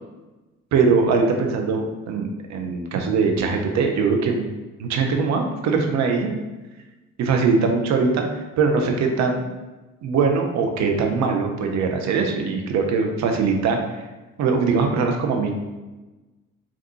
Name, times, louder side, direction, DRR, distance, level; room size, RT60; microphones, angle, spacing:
voice 1, 0.7-4.5 4.8-6.3 7.2-8.2 8.6-9.4 10.0-14.0 14.4-15.6, right 4 dB, 45° right, 3 dB, 0.5 m, -21 dB
3.4 x 2.3 x 2.7 m, 1.1 s
figure-of-eight pair, 40°, 40 cm